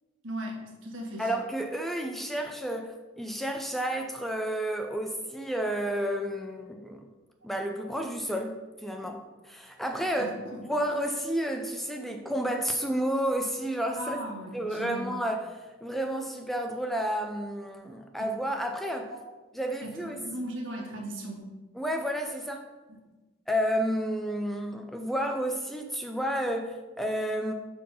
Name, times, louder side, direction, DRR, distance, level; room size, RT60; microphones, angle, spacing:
voice 1, 0.2-1.3 10.2-10.4 14.0-15.1 18.2-18.3 19.8-21.5, right 1 dB, 75° right, 0 dB, 1.5 m, -37 dB
voice 2, 1.2-7.1 7.4-10.4 10.6-14.2 14.5-19.1 19.5-20.2 21.8-22.7 23.5-27.5, equal, ahead, 4 dB, 0.4 m, -31 dB
5.5 x 4.4 x 5.4 m, 1.2 s
head